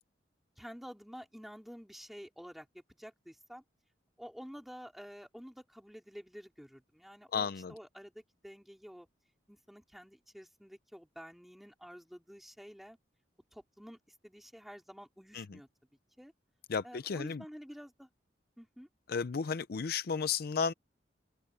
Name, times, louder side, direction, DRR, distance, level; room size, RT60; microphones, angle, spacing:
voice 1, 0.6-3.6 4.2-9.1 9.5-13.0 13.5-15.7 16.2-16.3 16.8-18.1 18.6-18.9, equal, ahead, 4.0 m, -50 dB
voice 2, 7.3-7.7 15.3-15.6 16.7-17.4 19.1-20.7, left 6 dB, 55° left, 0.5 m, -33 dB
open air
head